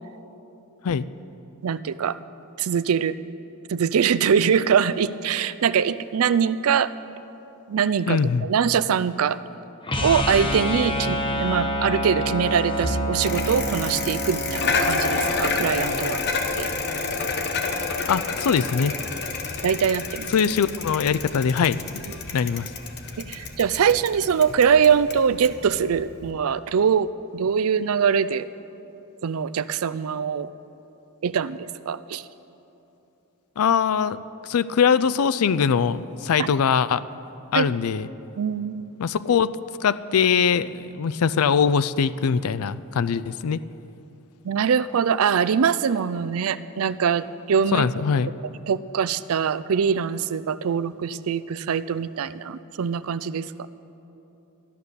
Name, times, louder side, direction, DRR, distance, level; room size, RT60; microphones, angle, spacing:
voice 1, 1.6-2.2 2.6-3.2 3.7-6.9 7.7-9.4 10.0-16.2 16.6-16.7 19.6-20.3 23.2-28.5 29.2-30.5 31.2-31.6 31.9-32.2 36.4-36.5 37.5-37.7 38.4-38.9 44.4-47.9 48.7-53.7, right 7 dB, 70° right, 16 dB, 0.4 m, -23 dB
voice 2, 8.1-8.5 18.1-18.9 20.3-21.8 22.3-22.7 33.6-34.2 34.4-37.0 37.5-38.1 39.0-39.5 39.8-43.6 47.7-48.3, left 6 dB, 75° left, 16 dB, 0.4 m, -22 dB
sound 1, 9.8-15.9, equal, 25° left, 1.1 m, -27 dB
Bicycle, 13.2-26.3, left 4 dB, 50° left, 1.1 m, -29 dB
13.5 x 11.5 x 6.7 m, 3.0 s
head